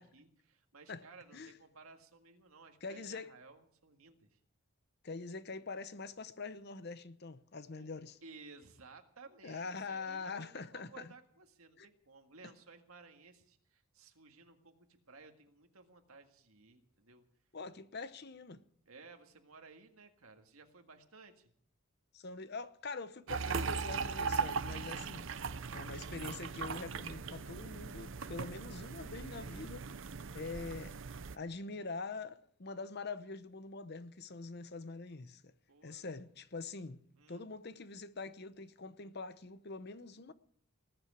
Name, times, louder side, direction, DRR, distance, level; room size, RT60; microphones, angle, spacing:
voice 1, 0.0-4.4 7.8-7.9 8.2-17.2 18.9-21.5 30.2-30.7 35.7-36.1 37.2-37.4, right 4 dB, 80° right, 1.8 m, -57 dB
voice 2, 2.8-3.3 5.0-8.2 9.4-11.1 11.8-11.9 17.5-18.6 22.1-25.3 25.7-29.8 30.3-31.0 31.3-35.5 35.8-37.0 37.3-40.3, left 4 dB, 50° left, 0.8 m, -44 dB
sound 1, 23.3-31.4, right 5 dB, 60° right, 0.6 m, -39 dB
19.5 x 7.9 x 8.2 m
head